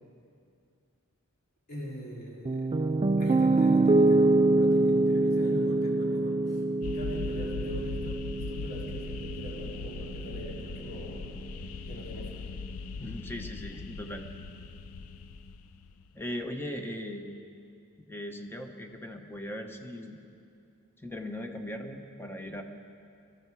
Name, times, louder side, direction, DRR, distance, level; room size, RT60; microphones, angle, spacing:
voice 1, 1.7-2.7 3.2-11.3 11.8-12.5, equal, 45° left, -4 dB, 3.3 m, -42 dB
Piano, 2.5-10.6, right 2 dB, 25° right, 0.4 m, -25 dB
sound 1, 6.8-16.1, left 4 dB, 75° left, 0.6 m, -39 dB
voice 2, 13.0-14.3 16.1-17.4 18.1-20.2 21.0-22.6, left 1 dB, 10° left, 5 dB, 1.0 m, -39 dB
22.0 x 13.5 x 4.7 m, 2.5 s
head